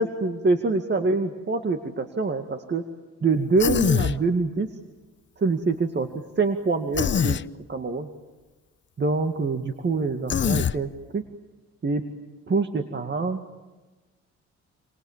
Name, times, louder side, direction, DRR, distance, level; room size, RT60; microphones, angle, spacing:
voice 1, 0.0-2.8 3.2-4.7 5.4-6.1 6.4-7.4 7.7-8.1 9.0-11.2 11.8-12.0 12.5-13.4, right 3 dB, 35° right, 6 dB, 2.1 m, -25 dB
Human voice, 3.6-4.2 6.9-7.4 10.3-10.8, left 7 dB, 40° left, 0.9 m, -23 dB
28.5 x 28.0 x 7.4 m, 1.2 s
cardioid pair, 90°, 30 cm